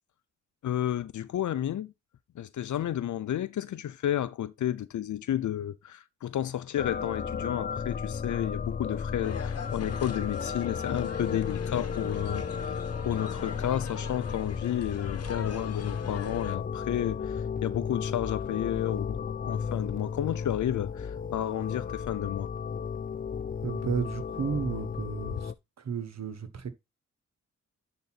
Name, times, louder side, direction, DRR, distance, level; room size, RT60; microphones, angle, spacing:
voice 1, 0.6-1.9 2.4-22.5, left 11 dB, 80° left, 0.5 m, -32 dB
sound 1, 6.8-25.5, left 6 dB, 30° left, 0.4 m, -34 dB
sound 2, 9.2-16.6, left 6 dB, 55° left, 1.1 m, -42 dB
voice 2, 23.6-26.7, right 6 dB, 60° right, 1.4 m, -33 dB
10.5 x 4.0 x 4.1 m
wide cardioid pair, 100°, 29 cm